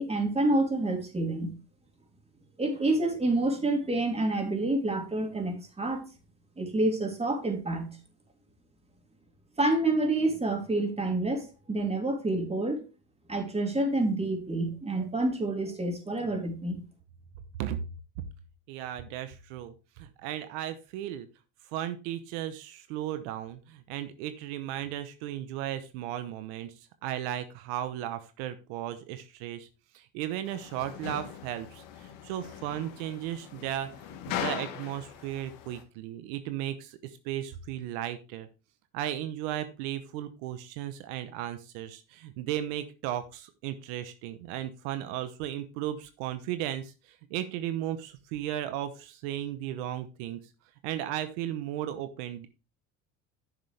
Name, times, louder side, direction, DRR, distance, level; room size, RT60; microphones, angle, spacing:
voice 1, 0.0-1.5 2.6-6.1 6.6-8.0 9.6-12.8 13.3-16.8, right 2 dB, 20° right, 3 dB, 3.1 m, -28 dB
voice 2, 18.7-21.3 21.6-29.7 29.9-38.5 38.9-50.4 50.8-52.5, right 12 dB, 85° right, 11 dB, 0.9 m, -35 dB
sound 1, 30.4-35.8, left 9 dB, 75° left, 1.6 m, -40 dB
10.5 x 6.8 x 3.4 m, 0.30 s
supercardioid pair, 95°, 33 cm